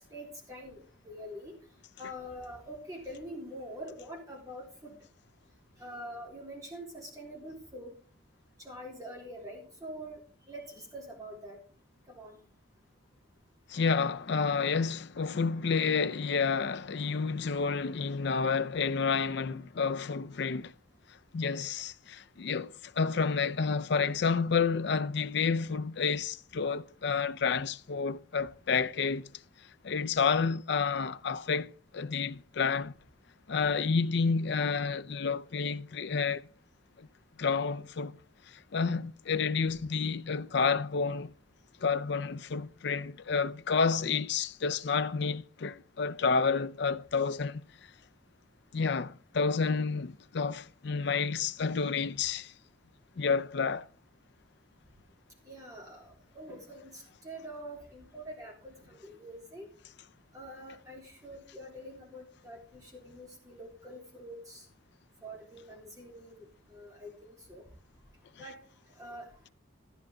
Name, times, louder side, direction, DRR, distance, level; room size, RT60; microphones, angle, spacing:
voice 1, 0.1-0.8 1.0-1.6 2.0-4.9 5.8-7.9 8.6-10.2 10.5-11.6 12.1-12.4 55.5-59.7 60.3-64.7 65.2-66.4 66.7-67.6 68.4-68.6 69.0-69.3, equal, 15° right, 3.7 m, -45 dB
voice 2, 13.7-20.7 21.3-29.3 29.8-32.9 33.5-36.5 37.0-37.1 37.4-38.2 38.5-41.3 41.8-47.6 48.7-52.5 53.2-53.9, left 5 dB, 55° left, 0.5 m, -30 dB
13.0 x 10.0 x 3.8 m
head